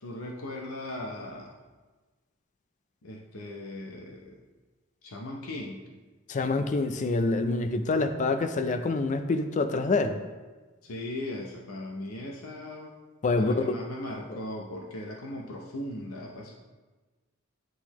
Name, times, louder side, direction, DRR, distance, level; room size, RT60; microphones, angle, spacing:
voice 1, 0.0-1.5 3.0-4.4 5.0-5.8 10.8-12.9 13.4-16.5, left 1 dB, 80° left, 0 dB, 0.7 m, -38 dB
voice 2, 6.3-10.2 13.2-13.8, left 3 dB, 35° left, 8 dB, 0.4 m, -26 dB
10.0 x 3.9 x 3.0 m, 1.3 s
head